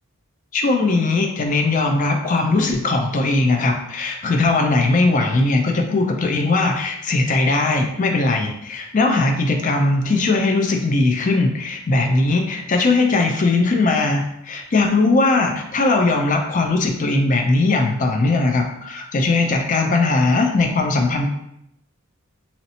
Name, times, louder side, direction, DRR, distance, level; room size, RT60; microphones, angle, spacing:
voice 1, 0.5-21.3, left 3 dB, 35° left, 3 dB, 0.4 m, -19 dB
3.0 x 2.8 x 2.7 m, 0.79 s
head